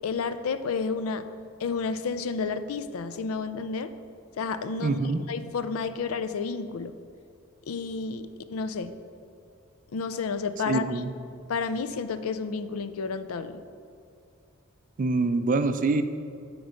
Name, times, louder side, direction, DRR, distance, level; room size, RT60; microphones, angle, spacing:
voice 1, 0.0-1.2 1.6-3.9 4.4-5.0 5.3-6.9 7.7-8.9 9.9-10.8 11.5-13.6, left 5 dB, 85° left, 11 dB, 0.4 m, -31 dB
voice 2, 4.8-5.2 10.7-11.1 15.0-16.0, right 3 dB, 40° right, 10 dB, 0.4 m, -25 dB
8.1 x 4.6 x 6.4 m, 2.4 s
head